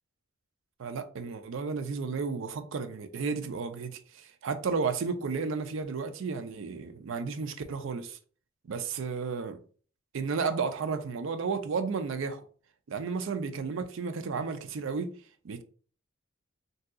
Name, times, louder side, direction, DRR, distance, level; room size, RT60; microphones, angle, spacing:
voice 1, 0.8-8.2 8.7-9.6 10.1-12.4 12.9-15.1 15.4-15.6, right 5 dB, 60° right, 0.4 m, -33 dB
2.7 x 2.3 x 3.6 m
head